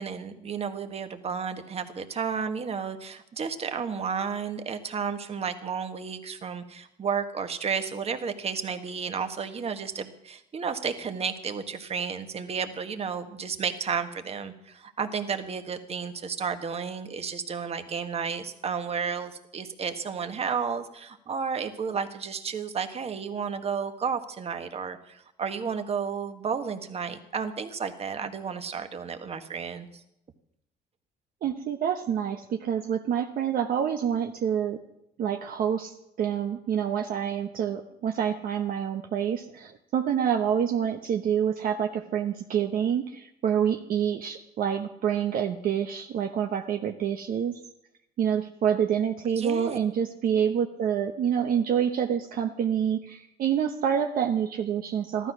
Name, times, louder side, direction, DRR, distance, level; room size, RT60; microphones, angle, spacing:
voice 1, 0.0-30.0 49.3-49.8, right 6 dB, 35° right, 8 dB, 1.6 m, -32 dB
voice 2, 31.4-34.8 35.2-47.5 48.2-55.3, right 8 dB, 60° right, 4 dB, 1.0 m, -27 dB
15.0 x 12.5 x 6.2 m, 0.80 s
cardioid pair, 110°, 17 cm